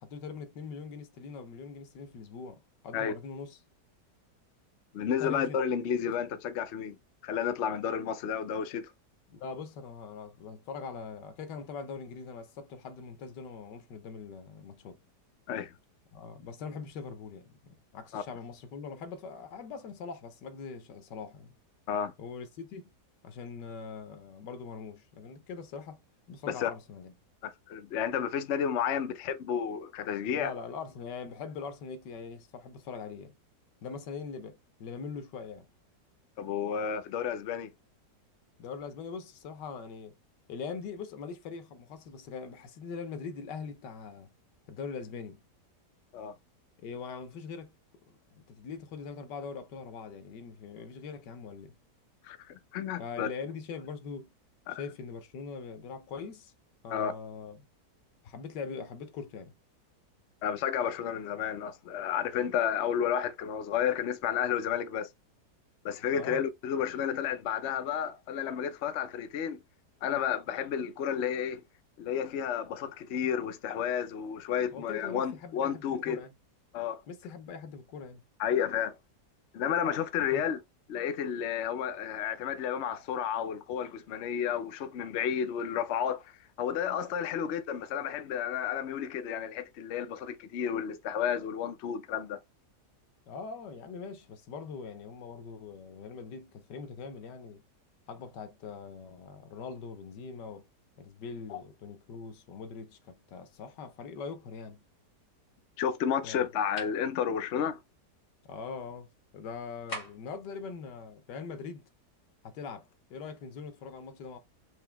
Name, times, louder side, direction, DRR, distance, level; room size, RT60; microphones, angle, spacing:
voice 1, 0.0-3.6 5.2-5.6 9.3-15.0 16.1-21.5 22.2-22.8 23.2-26.0 26.3-27.1 30.3-33.4 33.8-35.7 38.6-40.2 40.5-44.3 44.7-45.4 46.8-47.7 48.1-51.8 53.0-54.3 54.7-56.5 56.8-57.6 58.2-59.5 66.1-66.4 74.7-76.3 77.1-78.2 80.3-80.5 93.3-97.6 98.1-100.7 101.0-104.8 106.2-106.4 108.4-111.9 112.4-114.4, left 5 dB, 85° left, 1.5 m, -42 dB
voice 2, 4.9-7.0 7.2-8.9 15.5-15.7 18.1-18.2 21.9-22.1 26.5-26.7 27.4-30.5 36.4-37.7 46.1-46.3 52.2-53.3 54.7-54.8 56.9-57.1 60.4-65.1 65.8-69.6 70.0-71.6 72.0-76.2 76.7-77.0 78.4-79.0 79.5-80.6 80.9-86.3 86.6-92.4 101.5-101.6 105.8-107.8, left 8 dB, 55° left, 0.8 m, -31 dB
sound 1, 106.8-107.0 109.9-110.4, equal, 25° left, 1.6 m, -40 dB
4.8 x 2.9 x 3.4 m
omnidirectional pair, 1.8 m